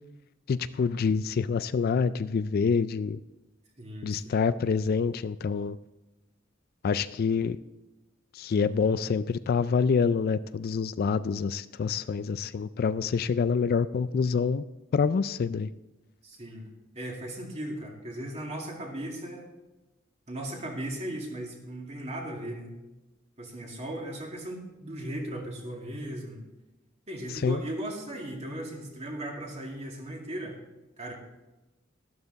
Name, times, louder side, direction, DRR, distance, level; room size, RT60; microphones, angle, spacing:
voice 1, 0.5-3.2 4.0-5.8 6.8-7.6 8.3-14.6 14.9-15.7 27.4-27.6, left 5 dB, 50° left, 15 dB, 0.3 m, -26 dB
voice 2, 3.8-4.4 8.8-9.0 16.2-16.6 16.9-19.5 20.3-22.8 23.4-26.4 27.1-30.6 31.0-31.1, right 1 dB, 35° right, 0 dB, 2.4 m, -37 dB
12.5 x 12.0 x 4.0 m, 1.0 s
head